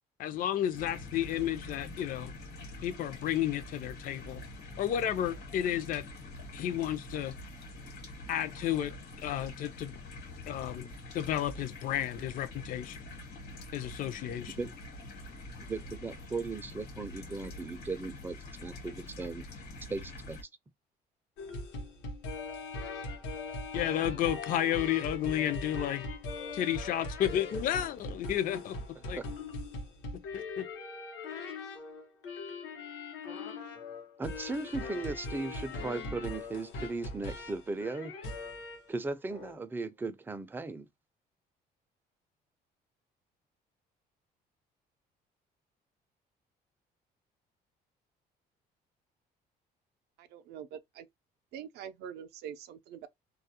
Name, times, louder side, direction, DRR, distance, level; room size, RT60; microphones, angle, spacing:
voice 1, 0.2-2.3 2.8-4.4 4.8-6.0 6.5-7.4 8.3-8.9 9.2-10.0 10.5-10.9 11.1-13.0 13.7-14.5 23.7-26.0 26.5-28.8 29.1-29.2 30.3-30.7, left 11 dB, 55° left, 0.4 m, -32 dB
sound 1, 0.7-20.4, left 2 dB, 70° left, 1.2 m, -46 dB
voice 2, 15.7-19.4 19.9-20.4 29.2-29.3 34.2-38.1 38.9-40.9, right 3 dB, 10° right, 0.4 m, -37 dB
sound 2, 21.4-38.9 39.3-39.6, left 2 dB, 90° left, 0.9 m, -40 dB
voice 3, 50.2-51.1 51.5-53.1, right 8 dB, 75° right, 0.4 m, -44 dB
2.3 x 2.0 x 2.8 m
cardioid pair, 110°, 17 cm